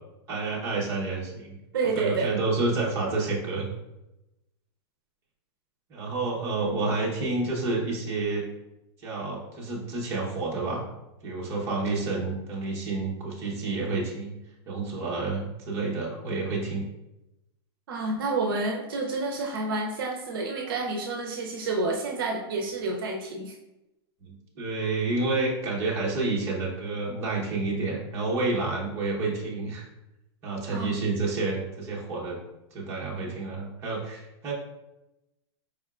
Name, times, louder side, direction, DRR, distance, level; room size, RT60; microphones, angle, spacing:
voice 1, 0.3-1.5 1.9-3.7 5.9-8.4 9.0-10.8 11.2-14.3 14.7-16.8 24.2-29.8 30.4-32.4 32.7-34.5, right 3 dB, 20° right, -4 dB, 0.8 m, -29 dB
voice 2, 1.7-2.3 17.9-23.5 30.7-31.0, right 3 dB, 55° right, 1 dB, 0.6 m, -29 dB
4.8 x 3.4 x 2.3 m, 0.94 s
supercardioid pair, 170°, 14 cm